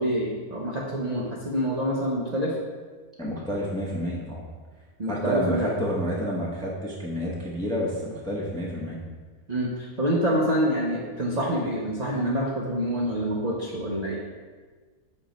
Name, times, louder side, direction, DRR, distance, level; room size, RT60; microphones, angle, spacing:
voice 1, 0.0-2.5 5.0-5.7 9.5-14.2, equal, 45° right, -4 dB, 0.5 m, -26 dB
voice 2, 3.2-4.4 5.1-9.0, equal, 5° left, -4 dB, 0.5 m, -29 dB
6.3 x 3.0 x 5.0 m, 1.4 s
omnidirectional pair, 1.6 m